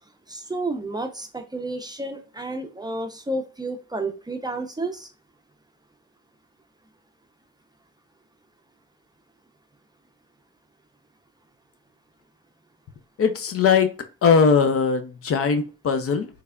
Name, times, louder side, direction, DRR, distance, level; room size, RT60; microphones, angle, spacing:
voice 1, 0.3-5.1, right 2 dB, 15° right, 0.5 m, -31 dB
voice 2, 13.2-13.9 14.2-16.3, left 5 dB, 50° left, 0.6 m, -20 dB
3.4 x 3.3 x 2.3 m
cardioid pair, 90°, 30 cm